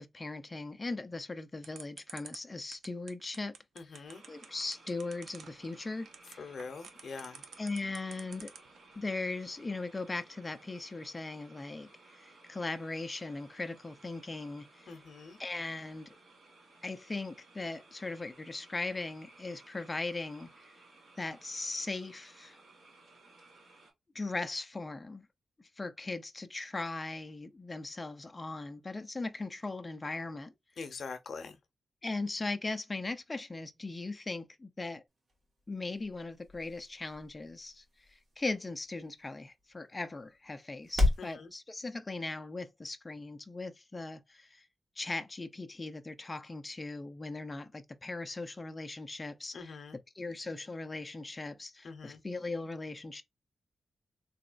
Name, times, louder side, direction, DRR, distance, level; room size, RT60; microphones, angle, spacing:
voice 1, 0.0-3.5 4.3-6.5 7.6-8.5 9.0-15.0 15.4-16.2 16.8-20.5 21.2-22.6 24.1-25.2 25.6-30.5 32.0-35.0 35.7-37.8 38.1-44.6 45.0-49.8 50.2-53.2, left 3 dB, 20° left, 0.4 m, -39 dB
sound 1, 1.6-8.8, right 6 dB, 85° right, 0.7 m, -49 dB
voice 2, 3.8-4.2 6.4-7.4 14.9-15.4 30.8-31.6 41.2-41.5 49.5-50.0 51.8-52.2, left 4 dB, 55° left, 0.7 m, -44 dB
sound 2, 4.1-23.9, right 3 dB, 70° right, 2.2 m, -59 dB
sound 3, 35.1-41.3, left 2 dB, 45° right, 1.4 m, -36 dB
4.1 x 3.0 x 2.5 m
wide cardioid pair, 175°, 0 cm